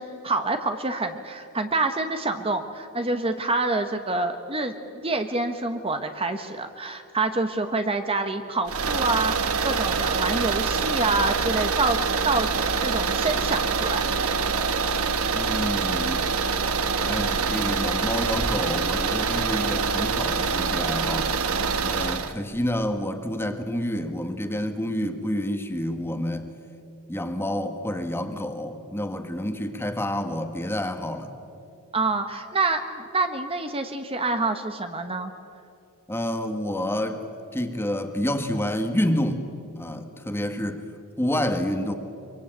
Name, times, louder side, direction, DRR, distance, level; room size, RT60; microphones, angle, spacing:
voice 1, 0.0-12.5 12.8-14.0 31.9-35.3, right 3 dB, 25° right, 7 dB, 1.2 m, -27 dB
sound 1, 8.7-22.3, right 5 dB, 70° right, 1.3 m, -25 dB
voice 2, 15.3-16.3 17.0-21.3 21.8-26.5 27.1-31.3 36.1-37.2 37.5-39.4 39.8-40.8 41.2-41.9, left 1 dB, 10° left, 7 dB, 1.6 m, -28 dB
24.5 x 23.5 x 9.0 m, 2.5 s
head